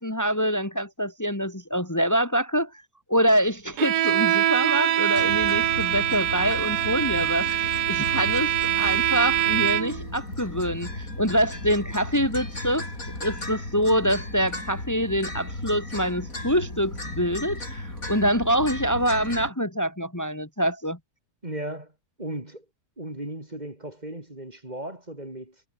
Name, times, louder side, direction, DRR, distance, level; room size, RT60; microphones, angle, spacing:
voice 1, 0.0-2.7 3.1-12.9 13.2-21.0, equal, 10° left, 2.8 m, -25 dB
Bowed string instrument, 3.8-10.1, right 12 dB, 90° right, 1.3 m, -24 dB
sound 1, 5.1-19.5, left 2 dB, 60° left, 7.7 m, -35 dB
voice 2, 21.4-21.9 22.2-22.7 23.0-25.6, right 1 dB, 25° right, 4.2 m, -36 dB
omnidirectional pair, 1.6 m